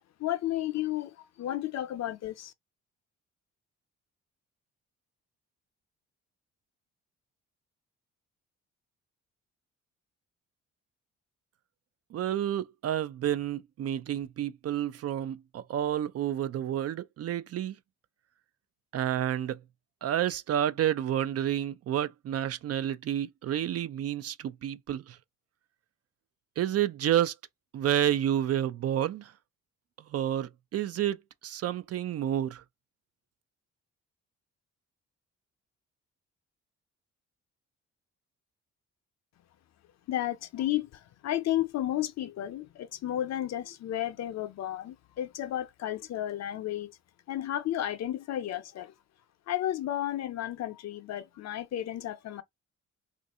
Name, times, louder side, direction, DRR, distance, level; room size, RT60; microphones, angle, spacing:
voice 1, 0.2-2.5 40.1-40.9 41.2-46.9 47.3-48.9 49.5-52.4, left 12 dB, 60° left, 0.6 m, -32 dB
voice 2, 12.1-17.7 18.9-19.6 20.0-25.2 26.6-27.3 27.7-29.3 30.1-32.6, right 11 dB, 55° right, 0.5 m, -30 dB
2.6 x 2.5 x 4.1 m
cardioid pair, 90°, 30 cm